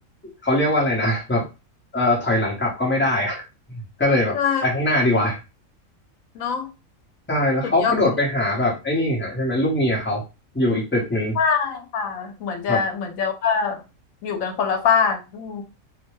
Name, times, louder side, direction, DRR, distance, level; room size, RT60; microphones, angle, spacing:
voice 1, 0.4-1.4 1.9-3.4 4.0-4.3 4.6-5.4 7.3-10.2 10.5-11.4 12.7-12.8, left 1 dB, 10° left, -3 dB, 0.8 m, -21 dB
voice 2, 4.3-4.6 6.4-6.7 7.6-7.9 11.4-13.8 14.2-15.6, left 6 dB, 80° left, 6 dB, 1.0 m, -23 dB
2.6 x 2.1 x 3.1 m, 0.28 s
omnidirectional pair, 1.4 m